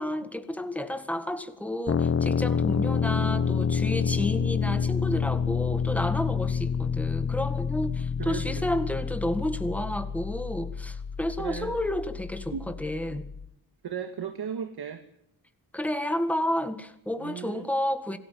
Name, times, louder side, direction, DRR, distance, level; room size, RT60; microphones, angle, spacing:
voice 1, 0.0-13.3 15.7-18.2, left 1 dB, 5° left, 9 dB, 1.9 m, -31 dB
sound 1, 1.9-13.5, left 6 dB, 35° left, 1.0 m, -28 dB
voice 2, 8.2-8.7 11.4-11.7 12.5-12.7 13.1-13.2 13.8-15.0 17.2-17.7, right 7 dB, 80° right, 7 dB, 2.1 m, -36 dB
26.5 x 18.5 x 7.6 m, 0.75 s
wide cardioid pair, 165°, 38 cm